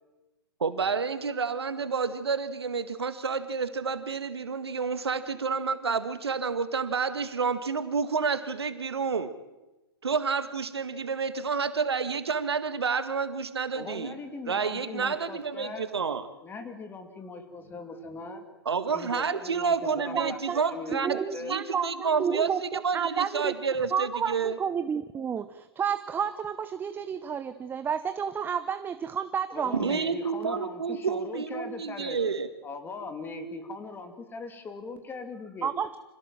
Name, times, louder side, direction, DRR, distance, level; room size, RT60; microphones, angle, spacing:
voice 1, 0.6-9.3 10.0-14.1 14.5-16.2 18.7-22.5 22.8-24.6 29.7-32.5, right 5 dB, 75° right, 11 dB, 1.9 m, -29 dB
voice 2, 13.7-15.9 16.4-18.4 18.9-21.5 29.5-32.2 32.6-35.7, left 3 dB, 15° left, 7 dB, 3.0 m, -40 dB
voice 3, 19.8-20.6 21.0-23.5 23.9-30.0 35.6-36.0, right 7 dB, 15° right, 12 dB, 0.8 m, -31 dB
26.0 x 17.0 x 7.7 m, 1.1 s
figure-of-eight pair, 115°, 13 cm